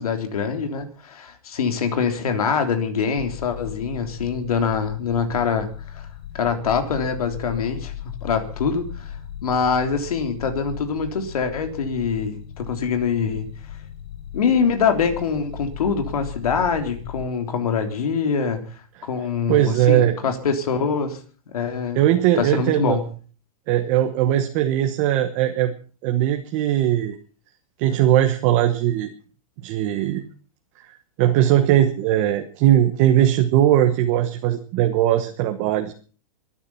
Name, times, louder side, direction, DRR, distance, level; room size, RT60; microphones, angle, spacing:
voice 1, 0.0-6.0 6.3-7.9 8.2-13.5 14.3-21.2 21.5-22.1 22.4-23.0, left 6 dB, 80° left, 6 dB, 3.6 m, -24 dB
sound 1, 3.2-17.3, left 10 dB, 45° left, 1.3 m, -37 dB
voice 2, 19.5-20.1 21.9-23.0 23.7-25.7 26.0-27.2 27.8-29.1 29.6-30.2 31.2-35.9, right 12 dB, 25° right, 5 dB, 1.2 m, -19 dB
24.0 x 10.0 x 5.7 m, 0.40 s
supercardioid pair, 175°, 19 cm